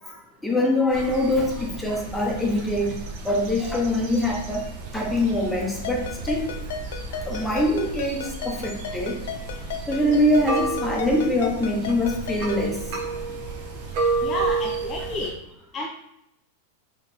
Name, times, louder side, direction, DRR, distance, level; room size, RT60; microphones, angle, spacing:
voice 1, 0.0-3.0 3.2-4.7 4.9-6.5 7.1-9.2 9.9-12.8, left 1 dB, 5° left, -2 dB, 0.9 m, -24 dB
sound 1, 0.9-15.3, right 3 dB, 50° right, 0.9 m, -32 dB
Ringtone, 5.8-12.7, left 6 dB, 70° left, 0.5 m, -36 dB
voice 2, 14.2-15.3 15.7-15.9, left 1 dB, 25° left, 0 dB, 0.5 m, -30 dB
4.1 x 3.1 x 4.1 m, 0.81 s
supercardioid pair, 145°, 0 cm